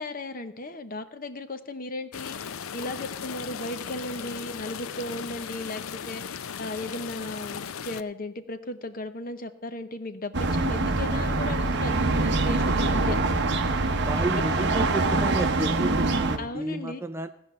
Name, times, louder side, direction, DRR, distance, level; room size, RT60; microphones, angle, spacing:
voice 1, 0.0-13.2 16.4-17.0, left 2 dB, 40° left, 9 dB, 0.8 m, -36 dB
sound 1, 2.1-8.0, left 7 dB, 80° left, 0.5 m, -37 dB
sound 2, 10.3-16.4, right 3 dB, 55° right, 0.9 m, -24 dB
voice 2, 14.1-17.3, right 1 dB, 10° right, 9 dB, 0.4 m, -31 dB
15.0 x 5.3 x 8.6 m, 0.80 s
head